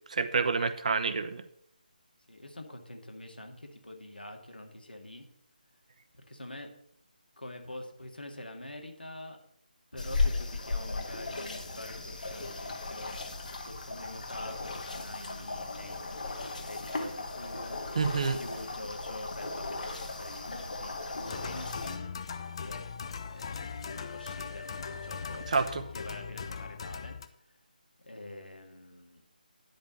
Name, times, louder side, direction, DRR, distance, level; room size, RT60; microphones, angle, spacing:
voice 1, 0.1-1.4 17.9-18.4 25.5-25.8, right 5 dB, 50° right, 10 dB, 1.0 m, -28 dB
voice 2, 2.3-5.3 6.1-6.7 7.4-9.4 9.9-13.2 13.6-17.8 18.3-22.1 22.6-22.8 23.2-25.5 25.9-27.2 28.0-29.2, left 1 dB, 85° left, 3 dB, 2.1 m, -45 dB
sound 1, 10.0-22.0, left 3 dB, 60° left, 1.8 m, -36 dB
sound 2, 21.2-27.3, left 6 dB, 35° left, 0.7 m, -40 dB
10.5 x 5.4 x 7.0 m, 0.70 s
figure-of-eight pair, 155°, 5 cm